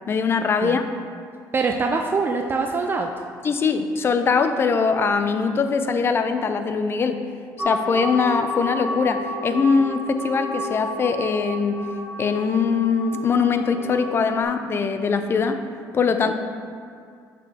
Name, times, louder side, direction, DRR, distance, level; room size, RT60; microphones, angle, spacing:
voice 1, 0.1-0.9 3.4-7.2 7.6-11.8 12.2-15.6 15.9-16.3, left 5 dB, 35° left, 8 dB, 0.5 m, -22 dB
voice 2, 1.5-3.1 16.2-16.3, right 4 dB, 30° right, 3 dB, 0.4 m, -24 dB
sound 1, 7.6-14.4, left 1 dB, 10° right, 0.8 m, -31 dB
7.6 x 6.0 x 2.9 m, 2.3 s
cardioid pair, 105°, 7 cm